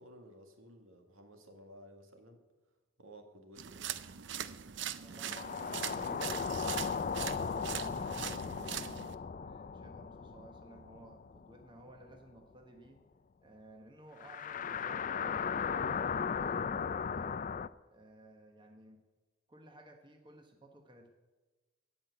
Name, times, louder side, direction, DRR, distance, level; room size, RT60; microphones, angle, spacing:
voice 1, 0.0-2.4 3.0-3.9 5.3-5.4, equal, 75° right, 4 dB, 2.0 m, -55 dB
sound 1, 3.6-9.2, right 9 dB, 55° right, 0.6 m, -41 dB
voice 2, 5.0-8.9 9.4-13.0 13.4-15.7 16.1-17.4 17.9-19.0 19.5-21.1, right 1 dB, 20° right, 3 dB, 1.1 m, -56 dB
sound 2, 5.2-11.8 12.1-12.2 14.2-17.7, left 6 dB, 40° left, 0.4 m, -37 dB
17.5 x 6.0 x 8.2 m, 1.2 s
head